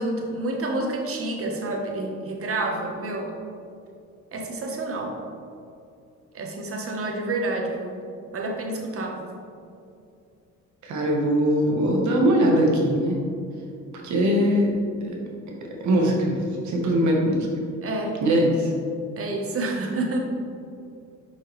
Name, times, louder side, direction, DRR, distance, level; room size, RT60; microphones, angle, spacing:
voice 1, 0.0-3.3 4.3-5.2 6.3-8.0 8.3-9.2 17.8-18.2 19.2-20.2, right 2 dB, 50° right, 1 dB, 1.1 m, -29 dB
voice 2, 10.8-13.2 14.0-14.8 15.0-15.2 15.8-16.4 16.6-17.4 18.2-18.7, right 1 dB, 70° right, -1 dB, 1.4 m, -21 dB
5.9 x 5.4 x 3.2 m, 2.5 s
cardioid pair, 90°, 30 cm